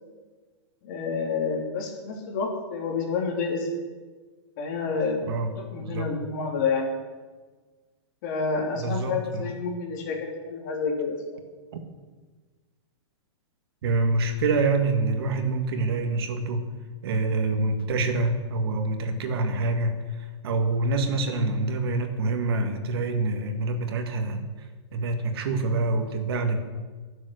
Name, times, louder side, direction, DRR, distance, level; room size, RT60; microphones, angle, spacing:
voice 1, 0.8-3.7 4.6-5.2 5.6-6.9 8.2-11.2, left 5 dB, 40° left, 1 dB, 3.3 m, -29 dB
voice 2, 5.3-6.1 8.8-9.5 11.7-11.8 13.8-16.7 17.0-24.5 24.9-26.6, right 3 dB, 55° right, 6 dB, 1.8 m, -26 dB
21.5 x 7.5 x 6.6 m, 1.4 s
hypercardioid pair, 170°, 15 cm